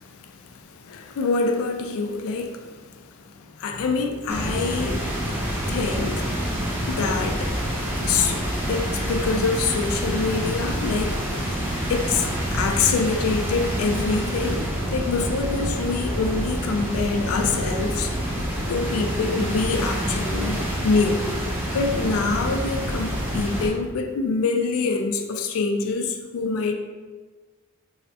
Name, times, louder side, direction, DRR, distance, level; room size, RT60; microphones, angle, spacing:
voice 1, 0.0-6.6 6.9-7.6 8.0-11.2 11.6-18.1 18.7-21.2 21.7-26.7, left 4 dB, 75° left, 5 dB, 0.3 m, -26 dB
sound 1, 4.3-23.7, equal, 10° right, 0.4 m, -27 dB
3.2 x 2.0 x 2.7 m, 1.4 s
head